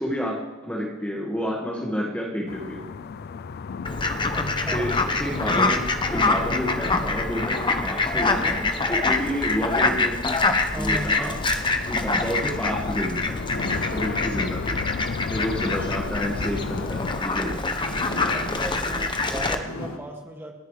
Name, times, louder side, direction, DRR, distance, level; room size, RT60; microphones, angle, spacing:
voice 1, 0.0-2.8 4.7-5.8 6.1-10.4 10.8-11.4 11.8-13.4 13.9-14.8 15.3-17.6, equal, 5° left, -2 dB, 1.7 m, -29 dB
sound 1, 2.5-17.2, left 5 dB, 50° left, 0.4 m, -35 dB
Fowl, 3.8-19.5, left 3 dB, 25° left, 1.0 m, -25 dB
voice 2, 4.3-4.9 10.7-11.3 18.3-20.5, equal, 10° right, 0 dB, 2.0 m, -36 dB
sound 2, 13.5-20.0, left 1 dB, 75° left, 1.6 m, -37 dB
29.5 x 10.0 x 3.3 m, 1.2 s
head